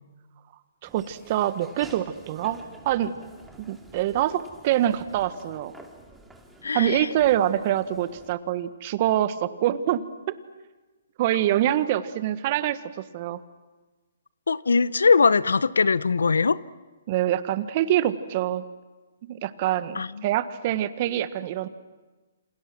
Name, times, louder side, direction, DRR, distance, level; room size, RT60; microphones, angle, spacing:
Laughter / Walk footsteps, 0.8-8.3, right 2 dB, 5° right, 2.4 m, -50 dB
voice 1, 0.8-2.6 2.8-3.1 3.7-5.7 6.7-10.3 11.2-12.8 13.1-13.4 17.1-18.6 19.2-21.7, right 12 dB, 40° right, 1.4 m, -25 dB
voice 2, 6.6-7.1 14.5-16.6 19.9-20.2, left 4 dB, 80° left, 0.8 m, -21 dB
28.5 x 27.5 x 6.2 m
hypercardioid pair, 140°, 0 cm